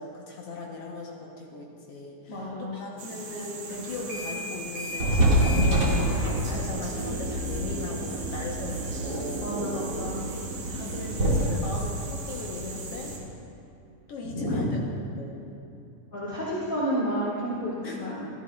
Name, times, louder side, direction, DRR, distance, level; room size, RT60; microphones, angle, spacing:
voice 1, 0.0-2.5 2.7-9.6 10.6-13.2 14.1-14.8 15.2-15.5 17.8-18.3, left 3 dB, 65° left, -2 dB, 1.5 m, -39 dB
voice 2, 2.3-2.8 9.4-10.2 14.2-14.7 16.1-18.2, equal, 35° left, -9 dB, 1.6 m, -30 dB
sound 1, 3.0-13.2, right 3 dB, 75° right, 3.1 m, -40 dB
sound 2, 3.9-4.4 4.7-13.2, right 1 dB, 35° right, 2.1 m, -27 dB
15.0 x 13.5 x 2.4 m, 2.8 s
omnidirectional pair, 4.0 m